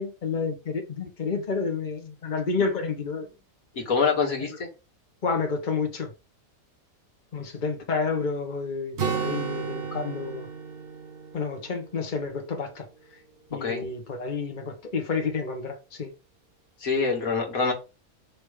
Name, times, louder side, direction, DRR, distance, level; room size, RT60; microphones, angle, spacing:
voice 1, 0.0-3.3 5.2-6.1 7.3-10.5 11.3-12.9 13.5-16.1, left 4 dB, 35° left, 1.3 m, -30 dB
voice 2, 3.8-4.7 13.6-13.9 16.8-17.7, left 5 dB, 75° left, 2.2 m, -25 dB
Acoustic guitar, 9.0-12.7, right 6 dB, 50° right, 1.0 m, -33 dB
6.0 x 3.3 x 5.0 m
omnidirectional pair, 1.5 m